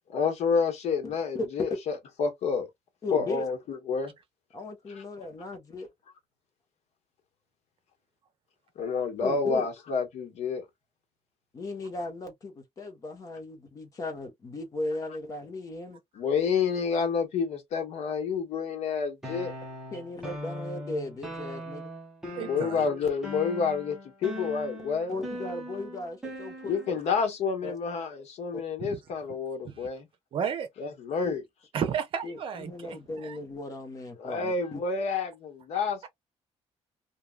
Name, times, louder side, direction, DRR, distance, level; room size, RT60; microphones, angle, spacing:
voice 1, 0.1-2.7 3.1-4.1 4.9-5.0 8.8-10.6 16.1-19.5 22.4-25.1 26.6-30.1 30.8-31.4 34.2-36.1, left 5 dB, 75° left, 1.1 m, -29 dB
voice 2, 1.0-1.5 3.0-3.4 4.5-5.9 9.2-9.7 11.5-16.0 19.9-21.9 25.1-27.0 27.6-27.7 31.2-31.4 32.2-34.8, left 2 dB, 30° left, 1.0 m, -37 dB
sound 1, 19.2-27.1, left 1 dB, 5° right, 1.0 m, -40 dB
voice 3, 22.4-22.9 28.8-29.0 29.6-29.9 30.3-30.7 31.7-33.4, right 7 dB, 50° right, 0.7 m, -33 dB
3.1 x 2.3 x 2.3 m
cardioid pair, 175°, 11 cm